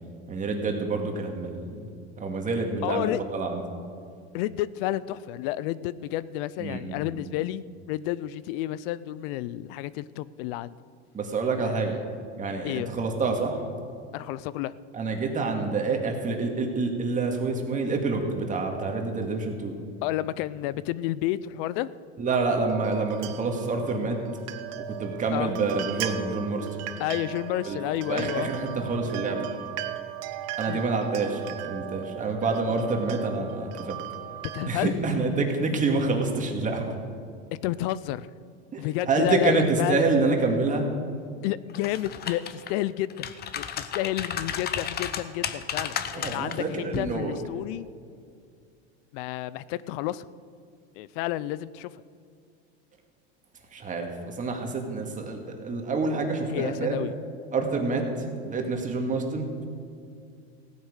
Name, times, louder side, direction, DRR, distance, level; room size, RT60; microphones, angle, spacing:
voice 1, 0.3-1.9 2.2-3.1 3.3-3.6 6.6-7.2 11.1-12.0 12.4-13.6 14.9-19.8 22.2-24.2 24.9-26.8 27.6-27.8 28.1-29.4 30.6-34.0 34.6-37.0 38.7-40.9 46.1-47.3 53.7-57.0 57.5-58.0 58.4-59.6, right 3 dB, 25° right, 2 dB, 2.2 m, -27 dB
voice 2, 2.8-3.2 4.3-10.7 11.6-12.0 12.6-12.9 14.1-14.7 20.0-21.9 25.3-25.5 27.0-28.5 30.7-30.8 34.5-34.9 37.6-38.3 38.8-40.0 41.4-43.3 43.6-47.9 49.1-50.2 50.9-51.9 56.5-57.1 59.1-59.2, left 14 dB, 60° left, 18 dB, 0.6 m, -30 dB
sound 1, 22.3-34.7, right 12 dB, 50° right, 1.0 m, -38 dB
sound 2, 41.7-42.7 43.1-46.6 46.9-47.1, left 9 dB, 30° left, 0.8 m, -32 dB
16.0 x 9.4 x 6.4 m, 2.3 s
supercardioid pair, 115°, 33 cm